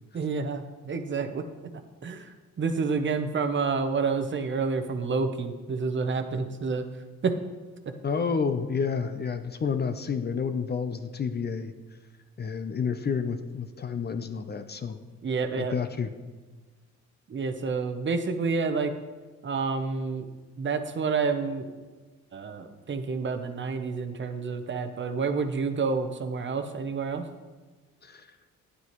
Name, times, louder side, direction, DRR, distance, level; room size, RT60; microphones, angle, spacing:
voice 1, 0.1-1.4 2.0-6.9 7.2-7.4 15.2-15.7 17.3-18.9 19.4-20.3 20.6-21.7 22.3-27.3, right 4 dB, 40° right, 8 dB, 0.8 m, -29 dB
voice 2, 8.0-11.7 12.4-15.0 15.6-16.1 28.0-28.4, left 6 dB, 35° left, 9 dB, 0.5 m, -30 dB
9.8 x 8.3 x 3.1 m, 1.3 s
cardioid pair, 90°, 30 cm